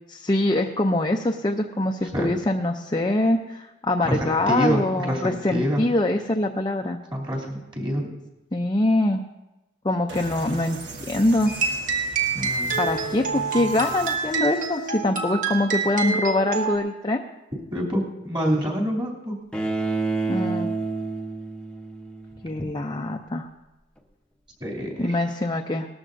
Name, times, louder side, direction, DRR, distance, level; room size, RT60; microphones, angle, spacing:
voice 1, 0.1-7.0 8.5-9.2 9.8-10.8 11.1-11.5 12.8-17.2 20.3-20.7 22.4-23.5 25.0-25.9, left 1 dB, 25° left, 3 dB, 0.5 m, -24 dB
voice 2, 4.0-5.9 7.1-8.1 12.3-12.8 17.7-19.3 22.6-22.7 24.6-25.2, equal, 25° right, -3 dB, 2.7 m, -27 dB
sound 1, 10.1-14.9, right 2 dB, 60° right, 1.3 m, -39 dB
sound 2, 11.5-16.8, right 4 dB, 40° right, 1.5 m, -27 dB
Bowed string instrument, 19.5-22.6, right 3 dB, 5° left, 0.9 m, -28 dB
19.0 x 14.0 x 2.6 m, 1.0 s
head